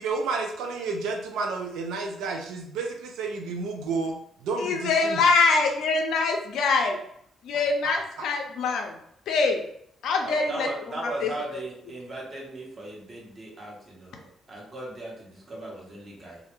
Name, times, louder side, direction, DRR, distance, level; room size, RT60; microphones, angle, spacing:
voice 1, 0.0-4.2 4.4-5.2 7.8-8.0, right 4 dB, 85° right, 3 dB, 0.4 m, -31 dB
voice 2, 4.6-7.0 7.4-9.0 9.3-9.6 10.0-10.7 11.2-11.3, left 4 dB, 75° left, 3 dB, 0.5 m, -24 dB
voice 3, 10.2-16.4, right 2 dB, 40° right, -3 dB, 0.9 m, -37 dB
2.3 x 2.1 x 2.9 m, 0.68 s
cardioid pair, 90°, 0 cm